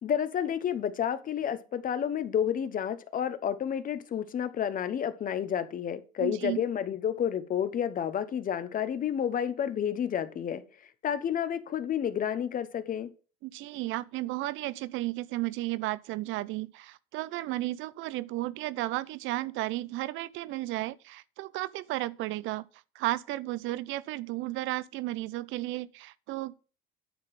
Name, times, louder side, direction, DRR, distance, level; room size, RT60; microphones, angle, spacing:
voice 1, 0.0-10.6 11.0-13.1, left 9 dB, 40° left, 0.9 m, -30 dB
voice 2, 6.2-6.6 13.4-22.7 23.0-26.6, right 17 dB, 65° right, 0.5 m, -33 dB
9.5 x 3.8 x 7.2 m
cardioid pair, 110°, 21 cm